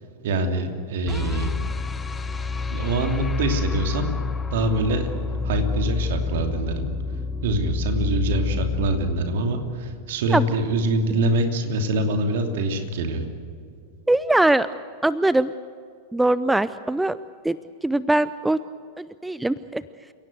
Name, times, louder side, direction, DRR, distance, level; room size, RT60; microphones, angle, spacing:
voice 1, 0.2-1.5 2.7-4.1 4.5-5.1 5.4-6.8 7.4-13.3, right 2 dB, 55° right, 5 dB, 2.9 m, -24 dB
sound 1, 1.1-10.2, left 4 dB, 15° left, 0.9 m, -28 dB
voice 2, 14.1-14.7 15.0-15.5 16.1-17.2 17.4-17.6 17.8-18.6 19.0-19.8, right 2 dB, 5° right, 16 dB, 0.5 m, -21 dB
29.5 x 17.0 x 8.0 m, 2.3 s
figure-of-eight pair, 90°, 0 cm